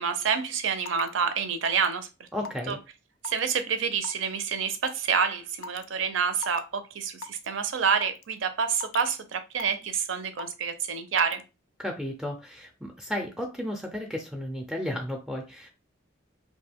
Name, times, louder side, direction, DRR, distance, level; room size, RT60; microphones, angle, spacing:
voice 1, 0.0-2.3 2.7-2.8 3.2-11.4, right 6 dB, 80° right, 0.5 m, -28 dB
Raindrop / Water tap faucet / Drip, 0.9-1.1 1.7-1.9 2.5-2.7 3.2-3.6 4.0-4.2 4.8-5.0 5.6-5.8 6.4-6.6 7.2-7.5 8.0-8.2 8.8-9.1 9.6-9.9 10.4-10.7 11.2-11.4, left 4 dB, 90° left, 0.4 m, -38 dB
voice 2, 2.3-2.8 11.8-15.7, left 1 dB, ahead, 0.4 m, -33 dB
2.7 x 2.2 x 3.4 m
head